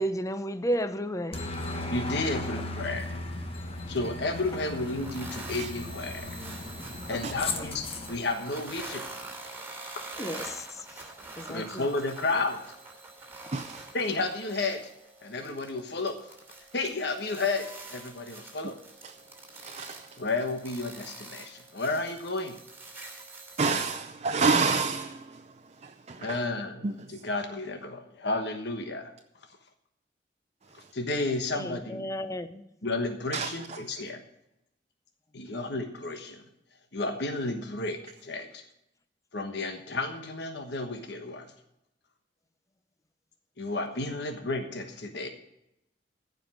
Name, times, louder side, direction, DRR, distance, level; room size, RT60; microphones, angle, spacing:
voice 1, 0.0-1.5 7.1-7.7 10.2-11.0 11.4-11.9 31.5-32.6, equal, 20° left, 0.7 m, -33 dB
Aircraft, 1.3-8.2, left 2 dB, 35° left, 1.3 m, -36 dB
voice 2, 1.9-3.2 3.9-6.4 7.1-9.0 11.5-12.6 13.9-14.8 15.2-16.2 16.7-18.8 20.2-22.6 26.2-26.8 27.2-29.1 30.9-32.1 32.8-34.2 35.3-36.4 36.9-38.6 39.3-41.5 43.6-45.3, left 2 dB, 65° left, 1.3 m, -32 dB
sound 1, 4.3-23.9, right 2 dB, 15° right, 2.9 m, -45 dB
voice 3, 13.5-13.9 19.0-19.1 19.6-20.2 23.6-25.5 25.8-26.4 26.8-27.1 33.3-33.8, right 4 dB, 40° right, 0.6 m, -29 dB
15.0 x 5.3 x 7.5 m
head